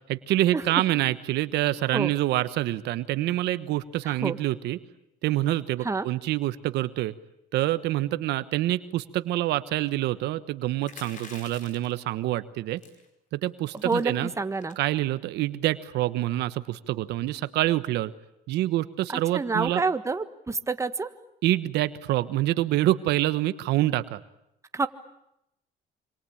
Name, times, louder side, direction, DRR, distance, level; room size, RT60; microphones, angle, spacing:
voice 1, 0.1-4.8 5.2-7.1 7.5-12.8 13.3-14.3 14.8-18.1 18.5-19.8 21.4-24.2, right 15 dB, 80° right, 14 dB, 1.2 m, -26 dB
voice 2, 4.0-4.4 5.8-6.1 13.8-14.8 19.1-21.1 24.7-24.9, right 4 dB, 15° right, 10 dB, 1.5 m, -28 dB
sound 1, 10.8-12.0 12.8-13.1 13.4-13.5 13.7-14.0 14.6-14.9, left 5 dB, 50° left, 5.1 m, -46 dB
26.5 x 26.0 x 8.7 m, 0.83 s
cardioid pair, 110°, 17 cm